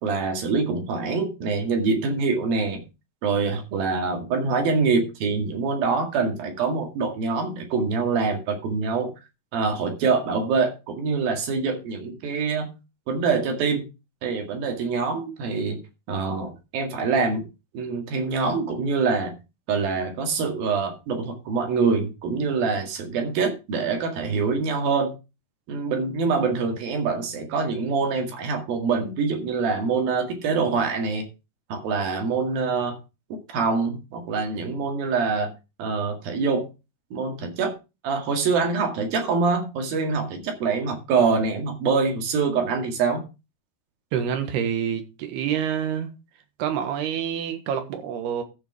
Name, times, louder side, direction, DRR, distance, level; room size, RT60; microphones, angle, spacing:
voice 1, 0.0-2.8 3.2-9.1 9.5-12.7 13.1-13.9 14.2-15.8 16.1-17.5 17.7-19.3 19.7-25.1 25.7-31.3 31.7-33.0 33.3-35.5 35.8-36.7 37.1-37.7 38.0-43.2, right 4 dB, 70° right, 3.8 m, -25 dB
voice 2, 44.1-46.1 46.6-48.4, right 8 dB, 85° right, 3.5 m, -27 dB
14.0 x 5.2 x 4.7 m
omnidirectional pair, 4.5 m